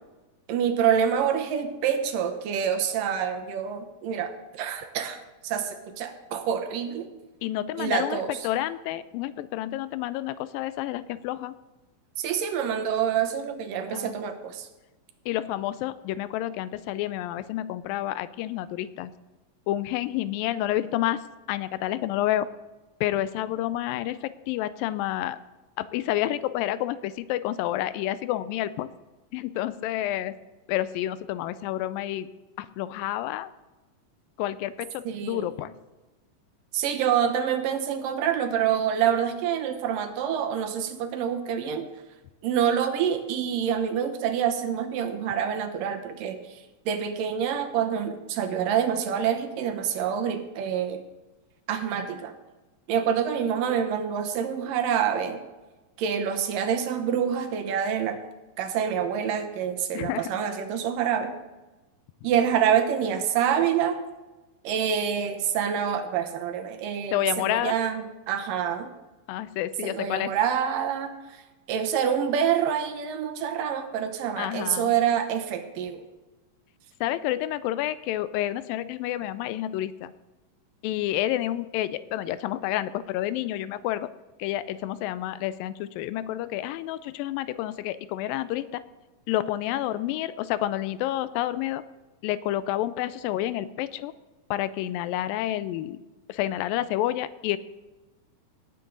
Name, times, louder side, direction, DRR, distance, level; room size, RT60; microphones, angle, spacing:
voice 1, 0.5-5.2 5.4-7.1 7.8-8.5 12.2-14.7 35.1-35.5 36.7-41.9 42.4-51.0 51.7-52.3 52.9-55.4 56.0-58.2 58.6-61.3 62.2-64.0 64.6-68.9 69.8-71.4 71.7-76.0, right 8 dB, 75° right, 6 dB, 2.6 m, -27 dB
voice 2, 7.4-11.5 13.9-14.2 15.3-19.1 19.7-21.2 21.5-22.5 23.0-25.4 25.8-28.9 29.3-30.4 30.7-32.3 32.6-33.5 34.4-35.7 59.9-60.3 67.1-67.8 69.3-70.3 74.4-74.9 77.0-80.1 80.8-84.1 84.4-88.8 89.3-91.8 92.2-94.1 94.5-96.0 96.3-97.6, left 13 dB, 85° left, 15 dB, 2.3 m, -29 dB
18.0 x 8.4 x 3.9 m, 1.1 s
omnidirectional pair, 4.0 m